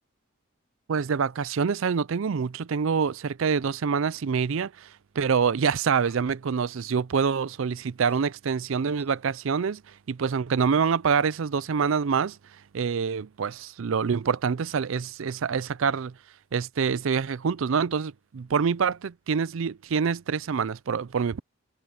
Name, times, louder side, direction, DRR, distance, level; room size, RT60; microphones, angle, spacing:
voice 1, 0.9-12.4 12.7-16.1 16.5-21.4, right 6 dB, 65° right, 0.4 m, -26 dB
Young dog barking and whining in his crate, 3.0-3.3 3.6-4.1 5.6-5.7 6.0-6.7 8.0-8.7 8.9-9.6, left 2 dB, 10° left, 4.4 m, -61 dB
head